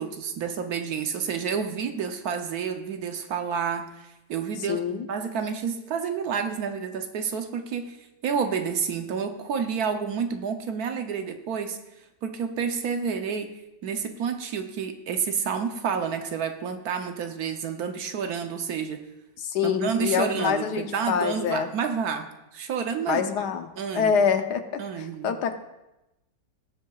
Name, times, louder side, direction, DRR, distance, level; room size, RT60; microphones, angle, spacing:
voice 1, 0.0-4.8 5.1-8.0 8.2-11.8 12.2-13.5 13.8-19.0 19.6-23.5 23.8-24.1 24.8-25.4, right 6 dB, 65° right, 7 dB, 1.1 m, -29 dB
voice 2, 4.7-5.1 19.4-21.7 23.1-23.7 23.9-25.6, left 7 dB, 75° left, 8 dB, 1.3 m, -26 dB
19.5 x 7.5 x 2.3 m, 0.96 s
omnidirectional pair, 1.9 m